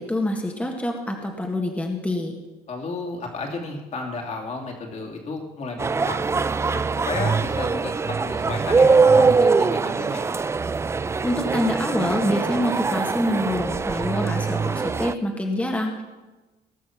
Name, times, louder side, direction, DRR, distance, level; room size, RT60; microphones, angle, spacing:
voice 1, 0.0-2.4 11.2-16.0, left 1 dB, 10° left, 2 dB, 1.6 m, -26 dB
voice 2, 2.7-6.2 6.7-10.2, left 3 dB, 45° left, 1 dB, 2.7 m, -33 dB
sound 1, 5.8-15.1, right 4 dB, 15° right, 0.3 m, -22 dB
18.5 x 6.3 x 5.9 m, 1.2 s
cardioid pair, 115°, 16 cm